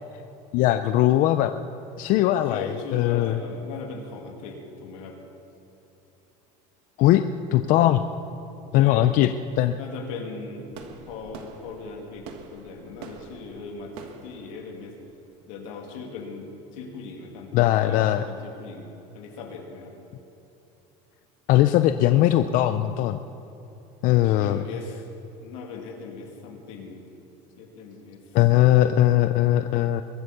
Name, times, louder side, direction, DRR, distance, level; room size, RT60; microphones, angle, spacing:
voice 1, 0.5-1.5 2.0-3.4 7.0-7.2 7.5-8.0 8.7-9.3 9.6-9.8 17.5-18.2 21.5-23.2 24.0-24.7 28.3-30.0, left 14 dB, 55° left, 10 dB, 0.5 m, -20 dB
voice 2, 2.3-5.2 8.7-9.1 9.8-14.9 15.5-20.0 22.7-22.9 24.2-25.0 25.4-27.0 27.6-28.2 28.7-29.1, left 4 dB, 85° left, 2 dB, 2.5 m, -39 dB
sound 1, 10.7-15.7, right 5 dB, 75° right, 1.7 m, -45 dB
22.5 x 8.2 x 6.7 m, 2.9 s
cardioid pair, 140°, 17 cm